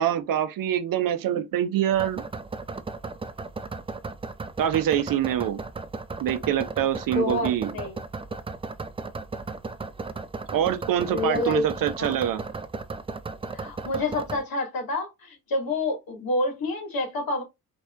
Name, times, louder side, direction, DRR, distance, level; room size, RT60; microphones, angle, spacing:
voice 1, 0.0-2.2 4.6-5.6 6.2-7.7 10.5-12.4, right 10 dB, 50° right, 0.7 m, -25 dB
sound 1, 1.9-14.4, right 3 dB, 15° right, 0.4 m, -35 dB
voice 2, 7.1-7.9 11.1-11.6 12.0-12.2 13.5-17.4, left 2 dB, 50° left, 2.2 m, -28 dB
4.2 x 3.4 x 2.5 m
hypercardioid pair, 45°, 44 cm